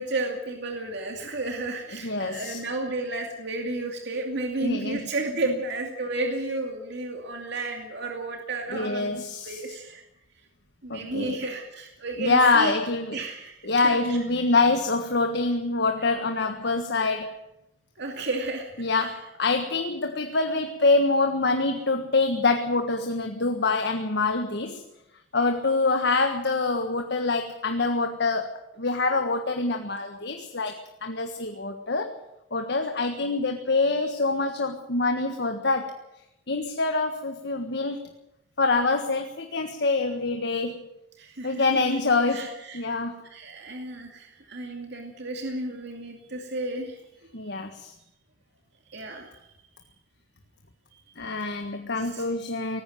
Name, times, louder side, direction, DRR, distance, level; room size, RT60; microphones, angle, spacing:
voice 1, 0.0-10.0 10.8-12.8 13.1-14.2 17.0-17.1 18.0-18.7 19.0-19.1 41.2-41.8 42.3-43.0 43.3-47.0 47.3-47.4 48.9-49.5 51.3-51.5 52.0-52.2, right 2 dB, 60° right, 2 dB, 2.5 m, -32 dB
voice 2, 2.0-2.6 4.6-5.1 8.7-9.7 10.9-11.4 12.2-13.2 13.6-17.3 18.8-24.8 25.3-32.1 32.5-35.9 36.5-38.0 38.6-40.9 41.4-43.2 47.3-47.9 51.2-52.8, left 3 dB, 60° left, 5 dB, 1.6 m, -25 dB
19.0 x 15.0 x 9.2 m, 0.88 s
head